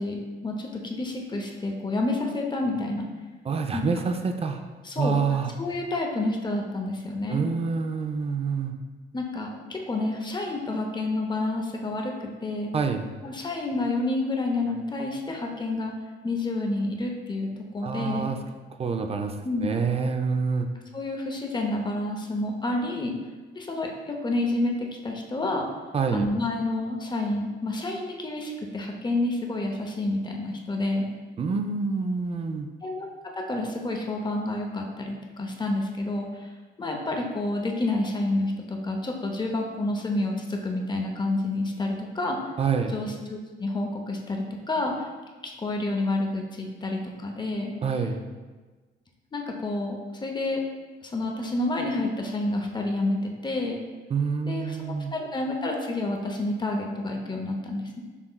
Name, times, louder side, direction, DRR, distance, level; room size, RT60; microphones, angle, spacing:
voice 1, 0.0-3.1 3.7-3.8 4.8-5.2 5.6-7.4 9.1-12.1 12.4-12.7 13.2-15.9 16.2-18.3 19.4-19.8 20.9-23.1 23.5-25.7 26.1-31.1 32.8-33.1 33.4-36.5 36.8-42.4 42.9-45.1 45.4-47.7 49.3-50.6 51.0-53.8 54.5-58.0, left 2 dB, 20° left, 1 dB, 0.6 m, -29 dB
voice 2, 3.5-4.6 5.0-5.5 7.3-8.7 12.7-13.1 17.8-18.4 18.8-19.3 19.6-20.7 25.9-26.3 31.4-32.7 42.6-43.0 47.8-48.2 54.1-55.1, right 5 dB, 30° right, 5 dB, 0.4 m, -27 dB
5.6 x 3.0 x 2.2 m, 1.3 s
cardioid pair, 90°, 20 cm